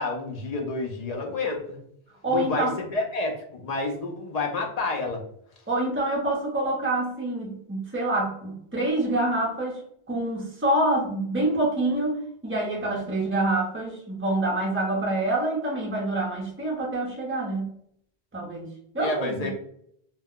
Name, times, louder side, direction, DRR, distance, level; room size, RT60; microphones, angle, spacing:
voice 1, 0.0-1.8 2.3-5.2 19.0-19.5, left 3 dB, 50° left, 2 dB, 0.5 m, -29 dB
voice 2, 2.2-2.8 5.7-9.8 10.1-17.7 18.3-18.7 18.9-19.5, right 1 dB, 15° right, -3 dB, 0.6 m, -26 dB
2.3 x 2.1 x 3.6 m, 0.70 s
omnidirectional pair, 1.1 m